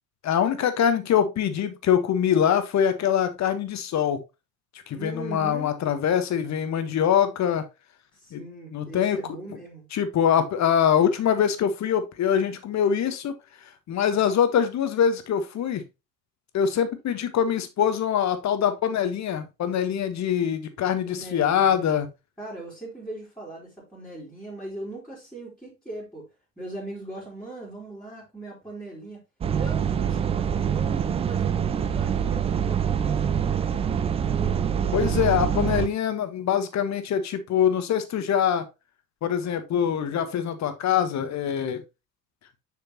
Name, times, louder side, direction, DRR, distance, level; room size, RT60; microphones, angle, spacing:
voice 1, 0.2-4.2 4.9-7.6 8.3-8.4 8.7-9.2 9.9-13.3 13.9-15.8 16.5-22.1 34.9-38.7 39.2-41.8, left 8 dB, 35° left, 1.3 m, -24 dB
voice 2, 4.9-5.8 8.1-9.9 21.1-22.0 22.4-26.3 26.6-29.2 29.6-34.6, right 2 dB, ahead, 3.5 m, -40 dB
sound 1, 29.4-35.9, right 8 dB, 15° right, 0.4 m, -25 dB
6.7 x 6.5 x 2.9 m
figure-of-eight pair, 70°, 49 cm